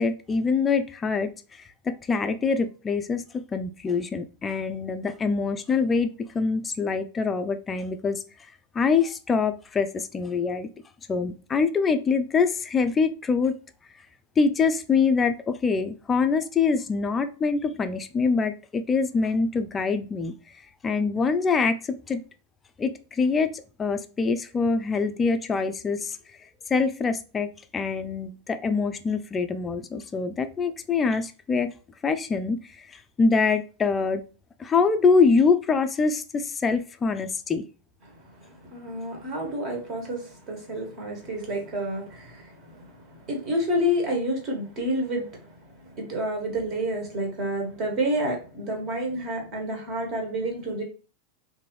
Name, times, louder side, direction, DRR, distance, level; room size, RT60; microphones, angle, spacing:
voice 1, 0.0-1.3 1.9-8.2 8.7-10.7 11.1-13.6 14.4-20.3 20.8-22.2 22.8-26.2 26.7-31.7 32.0-32.6 33.2-34.2 34.6-37.7, left 4 dB, 20° left, 0.4 m, -24 dB
voice 2, 38.7-45.3 45.9-50.8, equal, 35° right, 1.4 m, -29 dB
3.7 x 2.7 x 3.1 m
figure-of-eight pair, 90°, 0 cm